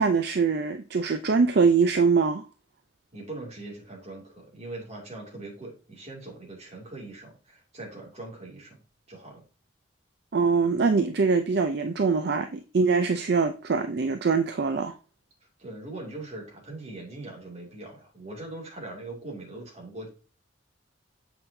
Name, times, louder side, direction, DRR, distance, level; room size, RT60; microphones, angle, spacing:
voice 1, 0.0-2.4 10.3-15.0, right 4 dB, 55° right, 0.5 m, -23 dB
voice 2, 3.1-8.8 9.1-9.4 15.6-20.1, right 2 dB, 35° right, 2.5 m, -41 dB
7.7 x 5.6 x 2.7 m
head